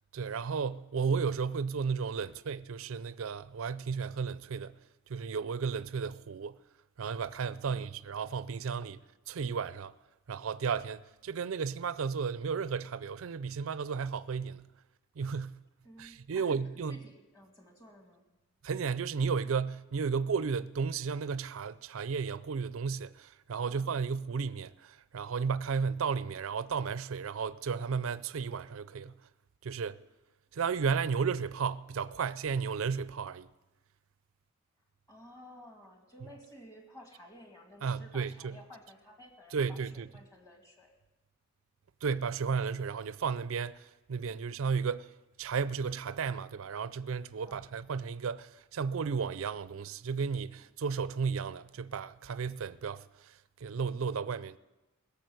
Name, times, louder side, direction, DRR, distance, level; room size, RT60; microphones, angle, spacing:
voice 1, 0.1-4.7 5.1-6.6 7.0-9.0 9.3-9.9 10.3-14.7 15.2-15.6 16.0-17.0 18.6-29.1 29.6-30.0 30.5-33.5 37.8-38.6 39.5-40.1 42.0-45.1 45.4-54.6, right 5 dB, 65° right, 0.4 m, -33 dB
voice 2, 15.8-18.3 23.6-23.9 35.1-40.9 47.4-47.6, equal, 15° left, 2.2 m, -54 dB
17.0 x 7.0 x 9.3 m
head